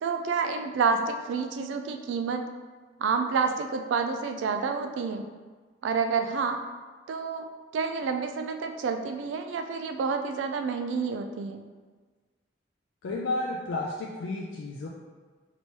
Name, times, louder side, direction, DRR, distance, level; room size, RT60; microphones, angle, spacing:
voice 1, 0.0-2.4 3.0-5.2 5.8-6.6 7.1-7.5 7.7-11.6, right 5 dB, 80° right, 6 dB, 0.3 m, -29 dB
voice 2, 13.0-14.9, left 2 dB, 85° left, -2 dB, 0.4 m, -32 dB
4.5 x 3.0 x 2.8 m, 1.4 s
head